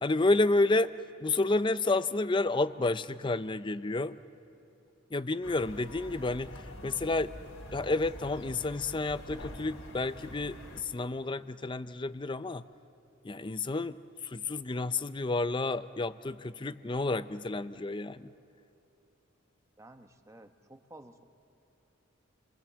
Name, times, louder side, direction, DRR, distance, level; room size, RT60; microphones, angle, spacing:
voice 1, 0.0-0.9 1.2-4.2 5.1-7.3 7.7-12.7 13.2-18.3, left 2 dB, 25° left, 13 dB, 0.5 m, -30 dB
sound 1, 5.4-10.8, left 1 dB, 85° left, 3.5 m, -46 dB
voice 2, 19.8-21.2, right 1 dB, 15° right, 7 dB, 1.1 m, -53 dB
29.5 x 23.0 x 7.5 m, 3.0 s
head